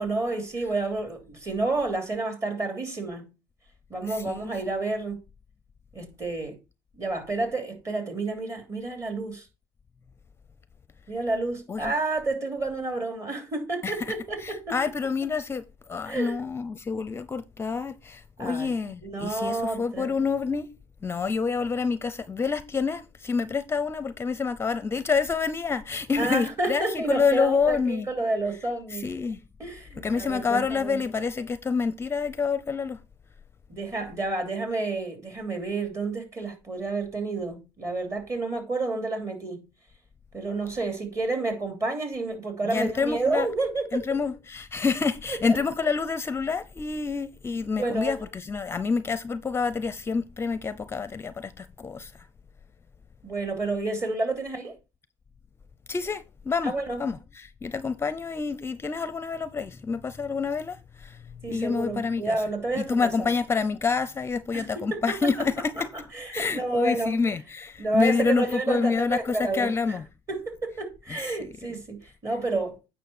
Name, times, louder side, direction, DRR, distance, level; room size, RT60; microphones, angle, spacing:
voice 1, 0.0-3.3 3.9-5.2 5.9-6.6 7.0-9.5 11.1-14.8 16.1-16.4 18.4-18.7 19.0-20.1 26.2-29.1 29.6-31.0 33.7-39.6 40.3-44.0 47.8-48.1 53.2-54.8 56.6-57.0 61.4-63.3 64.5-65.3 66.1-67.1 67.8-69.7 70.3-72.8, right 3 dB, 30° right, 3.0 m, -30 dB
voice 2, 4.1-4.5 11.7-11.9 13.8-20.7 21.0-28.1 28.9-29.4 30.0-33.0 42.6-43.5 43.9-52.3 55.9-56.7 57.0-61.2 61.5-62.4 62.8-65.9 66.3-70.0 71.1-71.4, left 5 dB, 25° left, 0.6 m, -28 dB
9.2 x 5.5 x 4.3 m
supercardioid pair, 90°, 10 cm